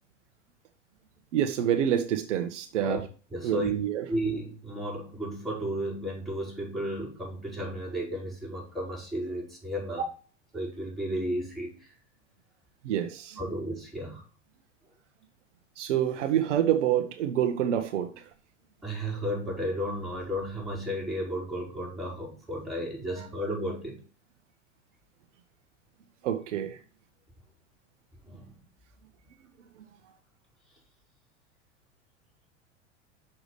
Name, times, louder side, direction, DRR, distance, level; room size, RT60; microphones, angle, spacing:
voice 1, 1.3-3.1 3.4-4.1 9.9-10.1 12.8-13.4 15.8-18.3 26.2-26.8 29.8-29.9, right 10 dB, 75° right, 1.2 m, -27 dB
voice 2, 3.3-3.7 4.1-10.0 10.5-11.9 13.4-14.2 18.8-24.0 28.2-28.5, equal, ahead, 4.8 m, -33 dB
6.6 x 6.1 x 4.9 m
hypercardioid pair, 110°, 37 cm